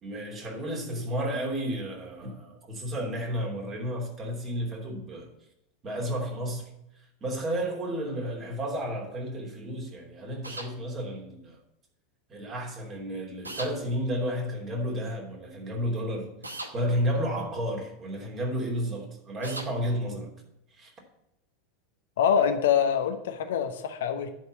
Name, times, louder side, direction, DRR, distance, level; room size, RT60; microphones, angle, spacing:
voice 1, 0.0-5.3 5.8-6.7 7.2-11.6 12.3-20.3 20.7-20.9, equal, 30° right, 3.0 m, -32 dB
sound 1, 10.4-10.7 13.4-13.7 16.4-16.7 19.4-19.7, right 2 dB, 85° right, 1.0 m, -37 dB
voice 2, 22.2-24.3, left 8 dB, 65° left, 0.9 m, -25 dB
10.0 x 4.7 x 7.6 m
figure-of-eight pair, 85°, 0 cm